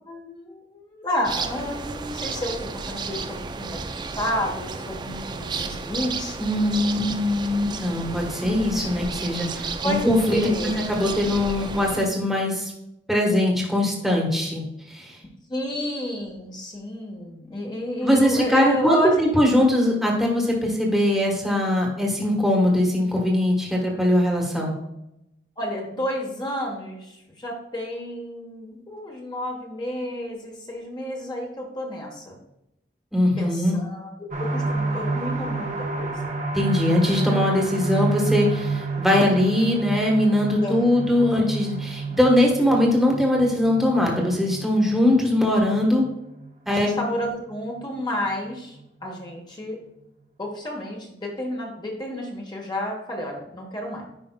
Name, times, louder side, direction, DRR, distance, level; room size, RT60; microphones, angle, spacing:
voice 1, 0.1-6.4 9.8-10.0 10.3-10.9 15.5-19.3 25.6-32.4 33.4-34.1 34.4-36.1 40.6-41.0 46.7-49.8 50.4-54.0, equal, 25° left, 0 dB, 1.1 m, -30 dB
sound 1, 1.2-12.1, right 4 dB, 25° right, 0.3 m, -33 dB
voice 2, 6.4-12.7 13.1-14.6 14.9-15.1 18.0-24.7 33.1-33.8 36.5-46.0 46.7-46.9, left 1 dB, ahead, -2 dB, 1.2 m, -21 dB
sound 2, 34.3-47.8 48.2-48.3 48.7-48.8, right 3 dB, 45° right, 0.9 m, -29 dB
10.0 x 5.2 x 2.2 m, 0.86 s
head